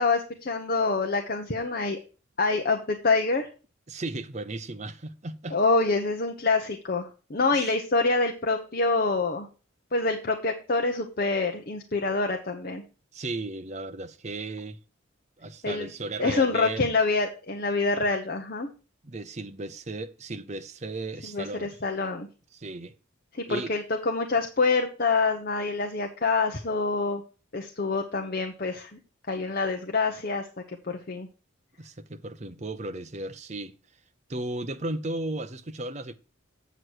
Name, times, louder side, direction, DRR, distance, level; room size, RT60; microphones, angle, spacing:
voice 1, 0.0-2.0 2.4-3.5 5.5-9.5 9.9-12.8 15.6-15.9 16.2-18.7 21.3-22.3 23.3-27.2 27.5-29.0 29.3-31.3, left 3 dB, 45° left, 0.9 m, -26 dB
voice 2, 3.9-5.6 7.5-7.7 13.1-14.8 15.4-16.9 19.0-21.8 22.5-22.9 23.5-23.7 31.8-33.7 34.3-36.1, right 2 dB, 35° right, 0.7 m, -35 dB
8.0 x 7.9 x 4.6 m
head